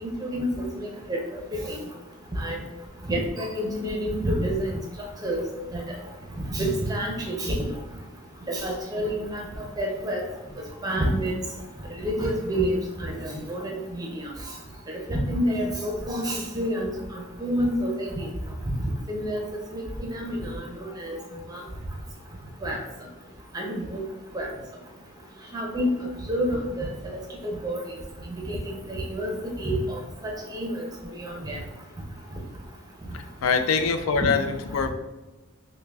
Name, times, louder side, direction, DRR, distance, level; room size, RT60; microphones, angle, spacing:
voice 1, 0.0-0.5 0.8-1.2 1.7-1.8 2.4-2.6 3.1-4.8 5.2-5.4 5.7-5.8 6.5-7.7 8.5-9.4 9.8-10.2 10.8-11.3 12.0-14.2 15.1-18.3 18.8-19.4 19.7-20.6 21.0-21.2 21.5-21.6 22.6-22.8 23.5-24.0 24.3-24.5 25.5-25.9 26.3-26.9 27.4-27.8 28.5-28.6 28.9-29.3 29.6-30.0 30.5-30.9 31.2-31.6, equal, 20° right, -1 dB, 0.6 m, -28 dB
voice 2, 33.1-34.9, left 5 dB, 85° left, 8 dB, 0.4 m, -24 dB
5.5 x 2.2 x 2.3 m, 1.1 s
head